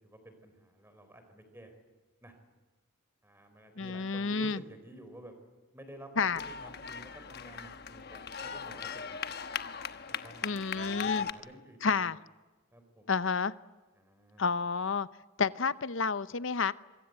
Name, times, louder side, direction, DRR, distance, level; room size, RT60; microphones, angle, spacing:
voice 1, 0.0-1.7 2.2-2.3 3.2-5.3 5.7-9.4 10.1-12.0 12.7-13.1 13.9-14.4, right 1 dB, 10° right, 7 dB, 4.3 m, -52 dB
voice 2, 3.8-4.6 6.2-6.4 10.4-11.3 11.8-12.2 13.1-13.5 14.4-15.1 15.4-16.7, left 5 dB, 65° left, 15 dB, 0.8 m, -30 dB
sound 1, 6.3-11.3, left 7 dB, 50° left, 1.1 m, -38 dB
25.5 x 24.0 x 7.9 m, 1.3 s
head